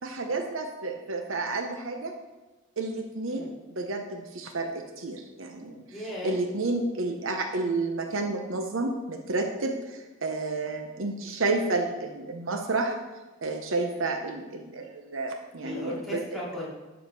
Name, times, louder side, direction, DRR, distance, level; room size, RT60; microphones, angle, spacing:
voice 1, 0.0-2.1 2.8-5.8 6.2-13.0 13.4-16.2, right 3 dB, 65° right, 4 dB, 0.8 m, -30 dB
voice 2, 5.9-6.4 13.9-14.1 15.6-16.7, left 1 dB, ahead, -9 dB, 3.0 m, -37 dB
12.0 x 4.9 x 5.3 m, 1.2 s
head